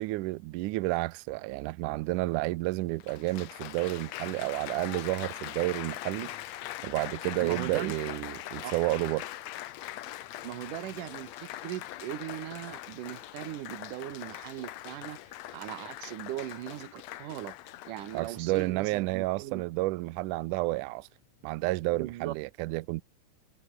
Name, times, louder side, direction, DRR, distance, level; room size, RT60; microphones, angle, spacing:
voice 1, 0.0-6.3 6.8-9.3 18.1-21.1 21.4-23.0, right 20 dB, 85° right, 1.8 m, -31 dB
Applause, 2.2-2.3 3.0-18.9 19.6-20.0, left 14 dB, 80° left, 1.5 m, -42 dB
voice 2, 7.2-7.9 8.6-8.7 10.4-17.6 17.9-19.6 21.9-22.3, right 14 dB, 70° right, 2.5 m, -39 dB
omnidirectional pair, 4.3 m